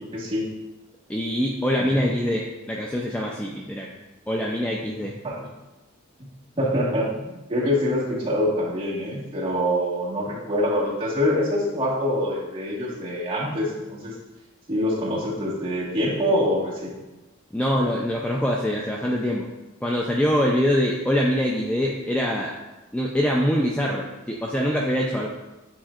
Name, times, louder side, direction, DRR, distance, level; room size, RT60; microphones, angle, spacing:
voice 1, 0.1-0.5 1.9-2.0 5.2-5.5 6.6-14.1 14.7-16.9, equal, 25° right, -7 dB, 1.5 m, -25 dB
voice 2, 1.1-3.9 4.3-5.1 17.5-19.5 19.8-22.6 22.9-25.3, equal, 5° left, -2 dB, 0.4 m, -24 dB
8.9 x 4.4 x 2.5 m, 1.1 s
head